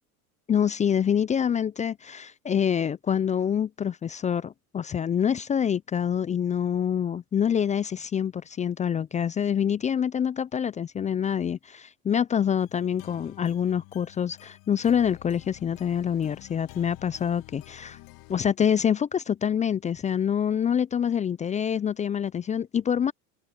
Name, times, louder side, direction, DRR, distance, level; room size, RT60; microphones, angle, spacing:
voice 1, 0.5-18.0 18.3-23.1, left 8 dB, 15° left, 0.4 m, -26 dB
sound 1, 12.6-18.4, left 22 dB, 55° left, 2.5 m, -49 dB
open air
hypercardioid pair, 85°, 44 cm